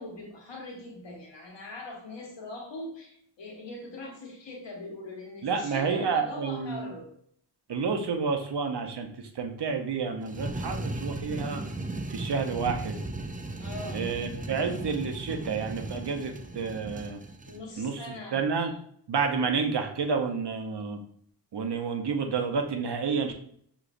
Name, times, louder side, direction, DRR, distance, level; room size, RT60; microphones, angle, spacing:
voice 1, 0.0-7.1 13.6-14.1 17.5-18.4, left 2 dB, 80° left, -1 dB, 1.3 m, -41 dB
voice 2, 5.4-6.9 7.7-9.1 9.4-11.6 12.1-13.0 13.9-17.2 17.8-18.1 18.3-18.7 19.1-21.0 21.5-23.3, right 5 dB, 65° right, 5 dB, 0.8 m, -29 dB
sound 1, 10.2-17.6, right 2 dB, 20° right, 0.5 m, -36 dB
6.3 x 3.0 x 2.5 m, 0.65 s
cardioid pair, 55°, 43 cm